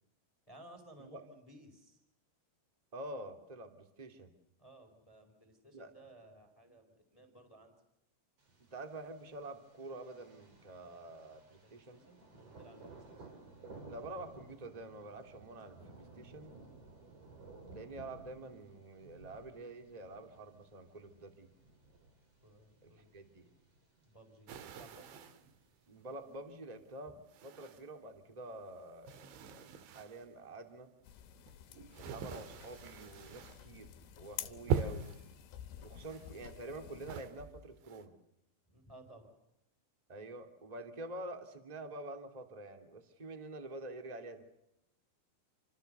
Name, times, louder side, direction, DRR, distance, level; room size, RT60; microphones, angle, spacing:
voice 1, 0.5-2.0 4.6-7.7 11.6-13.3 22.4-23.1 24.0-25.2 31.7-31.9 34.4-34.6 38.7-39.3, right 1 dB, 5° left, 5 dB, 4.2 m, -58 dB
voice 2, 2.9-4.3 5.7-5.9 8.7-12.0 13.8-16.5 17.7-21.5 22.8-23.4 25.9-27.1 27.4-30.9 32.0-35.0 35.8-38.1 40.1-44.4, right 2 dB, 15° right, 6 dB, 1.7 m, -47 dB
Thunder, 8.4-26.4, right 3 dB, 35° right, 5.0 m, -57 dB
sound 1, 24.5-25.5 26.2-26.3 27.3-28.1 28.5-30.3 31.0-33.7 34.0-34.3 34.7-35.3 35.9-36.7 37.1-38.0, right 7 dB, 75° right, 4.2 m, -41 dB
sound 2, 31.0-37.2, left 11 dB, 70° left, 3.4 m, -50 dB
29.0 x 26.5 x 6.9 m, 0.81 s
omnidirectional pair, 5.6 m